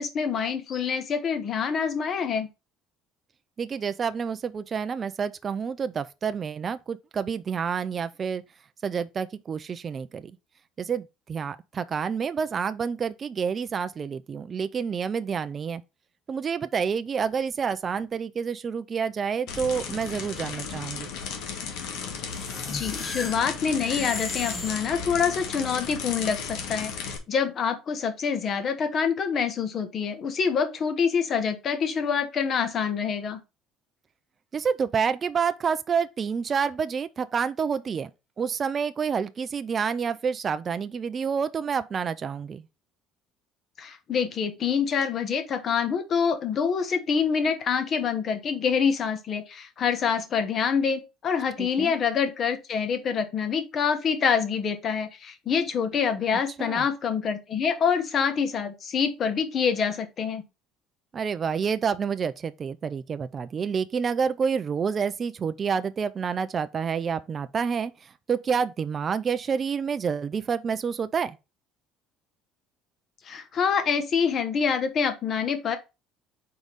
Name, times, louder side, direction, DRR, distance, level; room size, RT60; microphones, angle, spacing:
voice 1, 0.0-2.5 22.7-33.4 43.8-60.4 73.2-75.8, left 6 dB, 40° left, 1.2 m, -26 dB
voice 2, 3.6-8.4 8.8-10.3 10.8-15.8 16.3-21.1 34.5-38.1 38.4-42.7 51.6-51.9 56.6-56.9 61.1-71.4, right 6 dB, 30° right, 0.4 m, -28 dB
sound 1, 19.5-27.2, left 6 dB, 75° left, 1.5 m, -35 dB
sound 2, 22.3-25.6, left 3 dB, 20° left, 0.7 m, -37 dB
4.7 x 4.0 x 5.1 m
cardioid pair, 135°, 0 cm